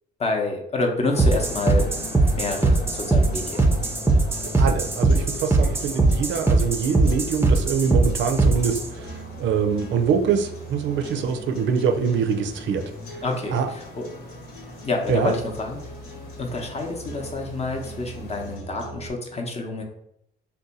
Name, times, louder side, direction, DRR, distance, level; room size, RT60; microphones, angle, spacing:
voice 1, 0.2-1.9 2.3-3.6 13.2-14.1 14.8-15.8 16.4-19.8, left 2 dB, 35° left, 1 dB, 0.7 m, -28 dB
sound 1, 1.1-18.6, left 2 dB, 50° left, 1.0 m, -42 dB
sound 2, 1.2-8.9, right 3 dB, 10° right, 0.5 m, -20 dB
sound 3, 3.1-19.1, right 1 dB, 80° left, 0.9 m, -41 dB
voice 2, 4.6-12.8 13.5-13.7 15.1-15.4, right 6 dB, 70° right, 5 dB, 0.5 m, -24 dB
2.6 x 2.2 x 3.9 m, 0.76 s
cardioid pair, 90°, 20 cm